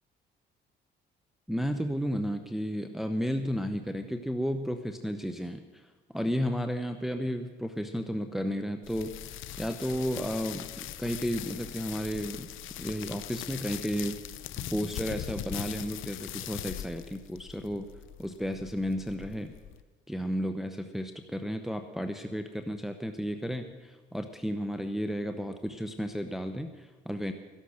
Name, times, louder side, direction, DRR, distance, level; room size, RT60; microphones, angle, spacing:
voice 1, 1.5-12.5 12.8-14.2 14.7-17.9 18.2-19.5 20.1-27.3, equal, ahead, 6 dB, 0.8 m, -33 dB
sound 1, 8.8-19.8, left 12 dB, 80° left, 0.7 m, -41 dB
13.5 x 11.5 x 6.5 m, 1.3 s
cardioid pair, 90°, 20 cm